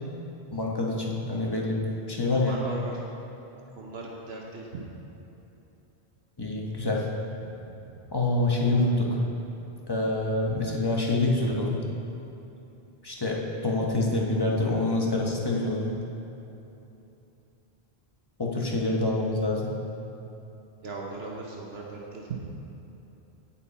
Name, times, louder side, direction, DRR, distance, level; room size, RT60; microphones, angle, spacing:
voice 1, 0.5-1.8 2.1-2.6 6.4-7.1 8.1-9.2 9.9-11.8 13.0-15.9 18.4-19.7, left 2 dB, 20° left, -2 dB, 1.2 m, -26 dB
voice 2, 2.3-3.0 3.8-4.8 7.4-7.9 20.8-22.5, right 3 dB, 70° right, -2 dB, 1.2 m, -38 dB
17.0 x 5.7 x 4.1 m, 3.0 s
omnidirectional pair, 1.1 m